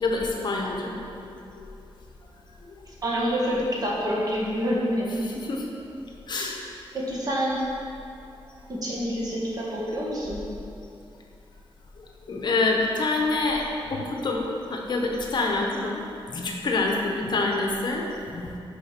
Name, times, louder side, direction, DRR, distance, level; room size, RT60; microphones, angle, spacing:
voice 1, 0.0-1.0 1.6-1.7 5.5-5.6 6.3-6.6 12.3-13.6 13.9-16.0 16.3-18.5, left 3 dB, 50° left, 0 dB, 0.8 m, -26 dB
voice 2, 2.9-5.2 6.9-7.6 8.7-10.4, equal, 40° right, -5 dB, 1.6 m, -27 dB
6.4 x 5.0 x 5.8 m, 2.7 s
wide cardioid pair, 150°, 10 cm